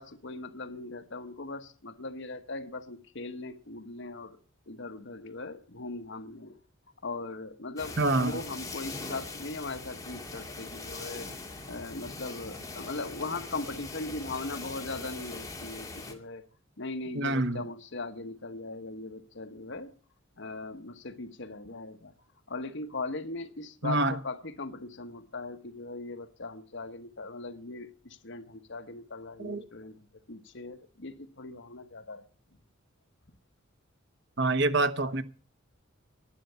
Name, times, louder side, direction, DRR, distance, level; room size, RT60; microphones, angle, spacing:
voice 1, 0.0-4.4 4.7-6.6 7.0-11.3 11.7-16.4 16.8-19.9 20.4-22.1 22.5-32.2, left 3 dB, 60° left, 1.2 m, -39 dB
sound 1, 7.8-16.1, left 3 dB, 15° left, 2.0 m, -41 dB
voice 2, 8.0-8.4 17.1-17.6 23.8-24.1 29.4-29.6 34.4-35.2, right 2 dB, 60° right, 1.1 m, -26 dB
11.5 x 11.0 x 6.9 m
head